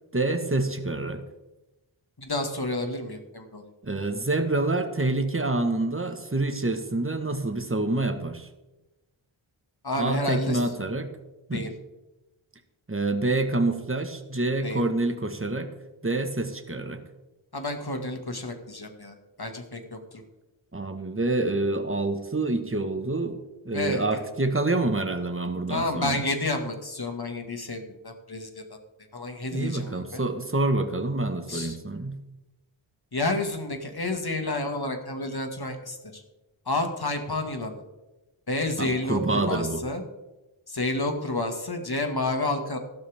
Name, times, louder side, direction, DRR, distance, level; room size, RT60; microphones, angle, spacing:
voice 1, 0.1-1.2 3.8-8.5 10.0-11.1 11.5-11.7 12.9-15.7 16.0-17.0 20.7-23.4 23.6-26.2 29.5-32.2 38.8-39.8, right 2 dB, 25° right, 7 dB, 1.6 m, -27 dB
voice 2, 2.2-3.6 9.8-10.6 11.5-11.7 14.6-14.8 17.5-20.2 23.7-24.0 25.7-28.8 29.1-30.2 31.5-31.8 33.1-36.2 36.7-37.8 38.5-40.0 40.7-42.8, left 2 dB, 50° left, 5 dB, 2.1 m, -30 dB
14.5 x 12.5 x 3.6 m, 1.0 s
wide cardioid pair, 55°, 49 cm